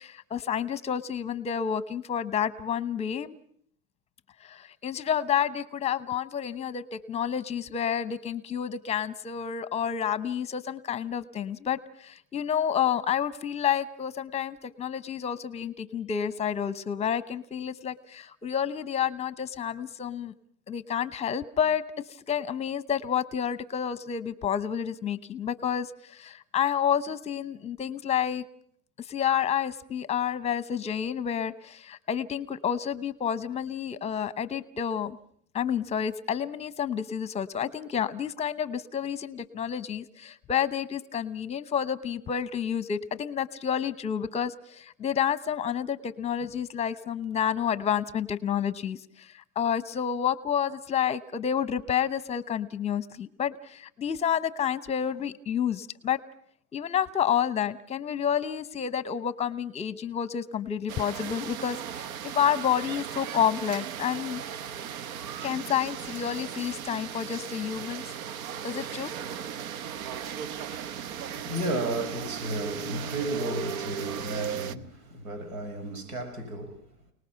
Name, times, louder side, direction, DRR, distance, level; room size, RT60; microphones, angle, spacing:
voice 1, 0.0-3.4 4.4-20.3 20.7-21.8 22.3-28.4 29.0-35.2 35.5-56.2 56.7-62.1 62.3-64.4 65.4-68.0 68.6-69.1, left 8 dB, 15° left, 15 dB, 0.9 m, -29 dB
sound 1, 60.9-74.8, right 9 dB, 70° right, 1.2 m, -37 dB
voice 2, 69.9-76.8, right 1 dB, 90° right, 8 dB, 6.3 m, -34 dB
29.5 x 19.5 x 5.8 m, 0.62 s
supercardioid pair, 140°, 43 cm